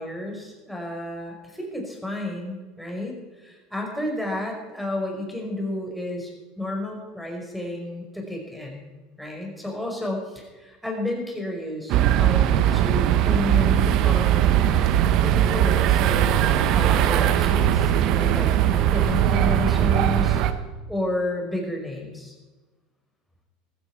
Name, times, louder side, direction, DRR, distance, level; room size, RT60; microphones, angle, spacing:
voice 1, 0.0-8.9 9.2-14.8 15.2-20.4 20.9-22.3, left 1 dB, ahead, -1 dB, 5.0 m, -31 dB
sound 1, 11.9-20.5, right 11 dB, 55° right, 1.0 m, -20 dB
15.0 x 14.5 x 4.7 m, 1.3 s
hypercardioid pair, 85°, 0 cm